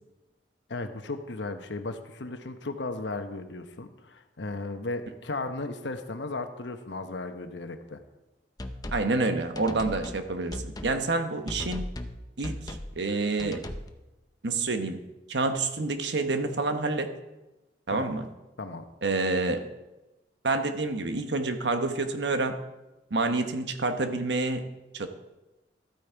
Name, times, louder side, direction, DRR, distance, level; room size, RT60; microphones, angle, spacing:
voice 1, 0.7-8.0 17.9-18.1 18.6-18.9, left 2 dB, 90° left, 7 dB, 1.0 m, -35 dB
sound 1, 8.6-9.1 9.6-10.2 10.5-11.0 11.5-12.2 12.4-12.9 13.4-13.9, left 1 dB, 20° left, 0.7 m, -37 dB
voice 2, 8.9-11.9 12.4-13.6 14.4-15.0 15.3-17.1 17.9-18.2 19.0-19.6 20.4-22.6 23.1-24.7 24.9-25.1, right 3 dB, 75° right, 7 dB, 1.1 m, -28 dB
13.0 x 8.7 x 4.6 m, 1.0 s
head